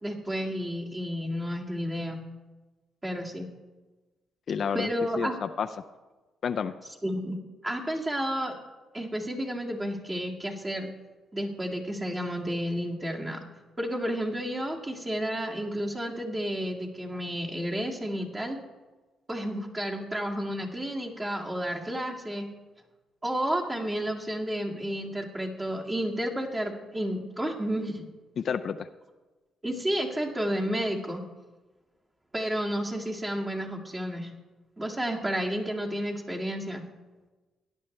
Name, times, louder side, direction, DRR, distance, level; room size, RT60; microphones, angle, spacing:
voice 1, 0.0-2.2 3.0-3.5 4.7-5.4 7.0-7.4 7.6-8.5 8.9-10.9 11.3-13.4 13.8-18.6 19.3-22.5 23.2-28.1 29.6-31.2 32.3-34.3 34.8-36.8, equal, 20° right, -1 dB, 2.1 m, -31 dB
voice 2, 4.5-4.9 5.2-5.7 6.4-6.7 28.4-28.9, left 7 dB, 55° left, 10 dB, 0.5 m, -29 dB
17.5 x 10.5 x 3.3 m, 1.2 s
cardioid pair, 90°, 0 cm